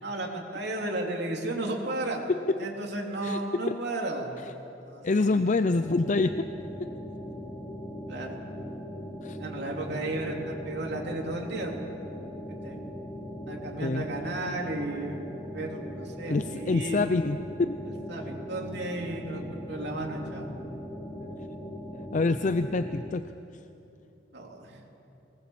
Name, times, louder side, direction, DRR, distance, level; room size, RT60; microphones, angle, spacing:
voice 1, 0.0-2.2 2.6-4.3 4.9-5.2 8.1-8.4 9.4-11.8 12.6-12.8 13.5-15.3 15.5-17.1 17.8-20.5 24.3-24.8, right 2 dB, 65° right, 0 dB, 3.4 m, -34 dB
voice 2, 5.0-6.5 6.8-6.9 9.2-9.4 13.8-14.0 16.3-17.8 21.2-21.4 22.1-23.2, left 3 dB, 45° left, 11 dB, 0.5 m, -26 dB
sound 1, 5.7-23.1, equal, 15° left, 2.1 m, -39 dB
23.5 x 19.5 x 7.4 m, 2.9 s
head